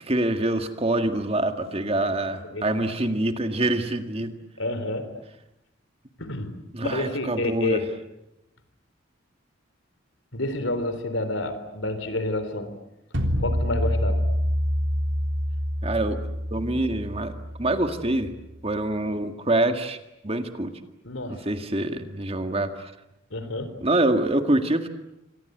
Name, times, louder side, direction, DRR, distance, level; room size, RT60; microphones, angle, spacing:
voice 1, 0.0-4.3 6.7-7.8 15.8-16.2 16.5-17.3 17.6-18.3 18.6-20.0 20.2-20.7 21.3-22.9 23.8-24.9, right 1 dB, 30° right, 7 dB, 1.9 m, -25 dB
voice 2, 1.8-2.9 4.6-5.2 6.2-6.6 6.8-7.9 10.3-12.7 13.4-14.3 21.0-21.4 23.3-23.8, left 2 dB, 75° left, 11 dB, 3.8 m, -29 dB
sound 1, 13.1-18.2, equal, 65° right, 3.6 m, -27 dB
28.0 x 25.5 x 8.1 m, 0.91 s
head